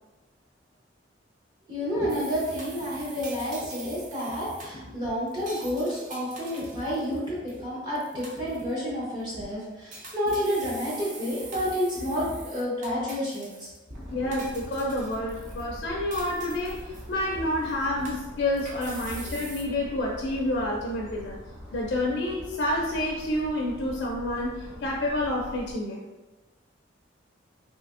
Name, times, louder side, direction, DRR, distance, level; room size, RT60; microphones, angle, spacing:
voice 1, 1.7-13.7, equal, 25° right, -7 dB, 0.9 m, -30 dB
sound 1, 2.1-7.6 7.9-8.7 9.2-9.5 9.9-14.0 14.3-15.7 16.1-17.3 17.6-19.6, right 3 dB, 40° right, 0.5 m, -44 dB
sound 2, 13.9-25.7, equal, 80° right, 0.8 m, -43 dB
voice 2, 14.1-21.4 21.7-26.0, left 1 dB, 60° left, -2 dB, 0.4 m, -29 dB
3.3 x 2.7 x 2.5 m, 1.1 s
head